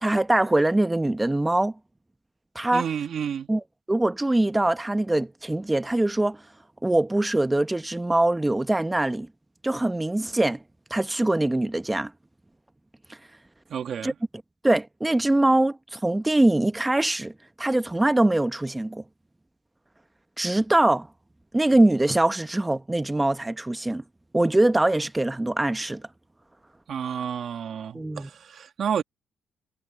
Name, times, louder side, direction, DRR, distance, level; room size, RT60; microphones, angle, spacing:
voice 1, 0.0-1.7 2.5-2.9 3.5-6.4 6.8-9.3 9.6-10.6 10.9-12.1 14.0-14.1 14.6-17.3 17.6-19.0 20.4-21.1 21.5-24.0 24.3-26.0 27.9-28.3, right 1 dB, 10° right, 1.0 m, -23 dB
voice 2, 2.7-3.5 13.7-14.1 26.9-29.0, right 8 dB, 60° right, 2.6 m, -30 dB
cardioid pair, 90°, 0 cm